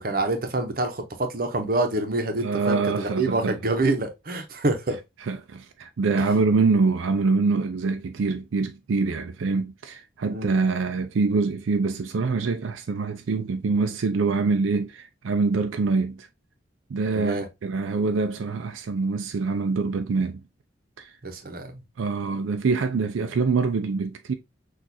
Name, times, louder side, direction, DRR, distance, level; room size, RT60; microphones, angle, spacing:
voice 1, 0.0-5.0 6.2-6.3 10.3-10.5 17.1-17.5 21.2-21.7, right 2 dB, 45° right, 0.7 m, -26 dB
voice 2, 2.4-3.6 5.3-16.3 16.9-20.4 21.0-21.1 22.0-24.3, right 4 dB, 85° right, 0.4 m, -25 dB
6.1 x 2.5 x 2.6 m
head